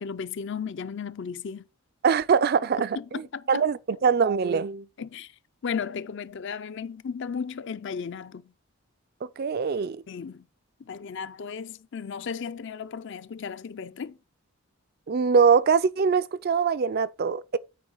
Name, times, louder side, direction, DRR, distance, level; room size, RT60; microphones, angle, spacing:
voice 1, 0.0-1.6 3.0-3.6 5.0-5.3 5.6-8.5 10.1-10.4 10.8-14.2, left 6 dB, 55° left, 0.4 m, -35 dB
voice 2, 2.0-3.2 3.5-4.9 9.2-10.0 15.1-17.6, right 6 dB, 45° right, 0.3 m, -23 dB
9.1 x 4.7 x 4.5 m
head